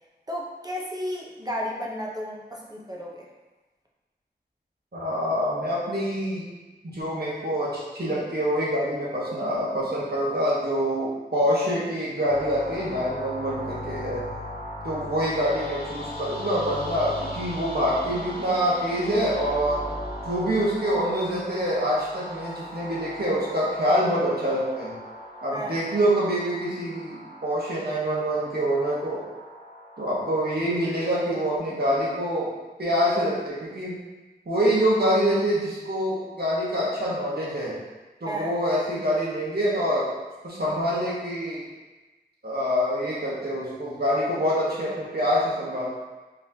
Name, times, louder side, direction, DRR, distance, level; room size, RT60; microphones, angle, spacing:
voice 1, 0.3-3.3 25.5-25.8 38.3-38.5, equal, 20° right, -3 dB, 0.7 m, -33 dB
voice 2, 4.9-6.4 6.9-14.2 14.8-19.8 20.2-24.9 25.4-29.2 30.0-32.5 32.8-34.0 34.5-37.8 38.2-40.1 40.4-41.6 42.4-46.0, equal, 65° right, -7 dB, 1.3 m, -25 dB
sound 1, 12.3-31.6, equal, 60° left, 0.8 m, -38 dB
4.1 x 3.2 x 2.8 m, 1.2 s
wide cardioid pair, 50°, 17 cm